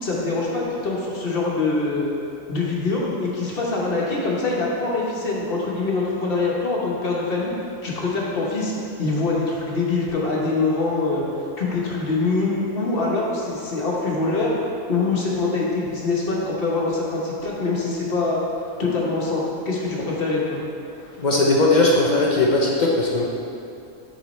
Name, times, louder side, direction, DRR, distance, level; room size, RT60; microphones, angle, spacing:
voice 1, 0.0-2.1 2.5-7.5 7.8-8.7 9.0-11.2 11.6-14.5 14.9-18.4 18.8-20.6 21.0-21.2, left 3 dB, 45° left, -4 dB, 1.1 m, -24 dB
voice 2, 21.2-23.2, left 2 dB, 60° left, -3 dB, 0.4 m, -18 dB
7.1 x 3.9 x 4.2 m, 2.7 s
omnidirectional pair, 1.5 m